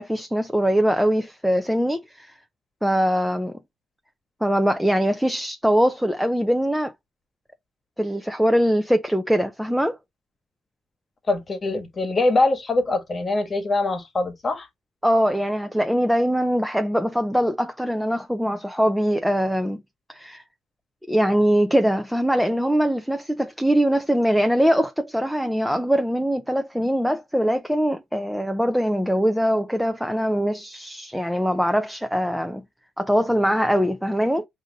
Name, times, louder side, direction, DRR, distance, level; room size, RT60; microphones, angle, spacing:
voice 1, 0.0-2.3 2.8-3.5 4.4-6.9 8.0-10.0 15.0-19.8 20.1-20.4 21.1-32.6 33.0-34.5, equal, ahead, 0.5 m, -22 dB
voice 2, 11.3-14.7, left 2 dB, 35° left, 1.3 m, -23 dB
4.9 x 2.7 x 3.9 m
cardioid pair, 90°, 0 cm